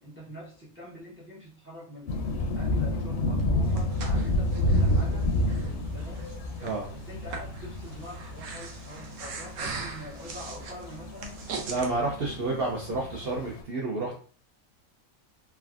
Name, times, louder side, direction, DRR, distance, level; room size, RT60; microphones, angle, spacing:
voice 1, 0.0-2.2 2.5-6.3 6.9-11.4, equal, 20° right, -4 dB, 0.4 m, -45 dB
sound 1, 2.1-13.6, left 1 dB, 65° left, 0.7 m, -30 dB
Breathing, 3.4-11.9, right 4 dB, 85° right, 1.1 m, -41 dB
voice 2, 11.7-14.2, right 2 dB, 60° right, -2 dB, 0.6 m, -30 dB
3.3 x 2.2 x 2.3 m, 0.42 s
omnidirectional pair, 1.5 m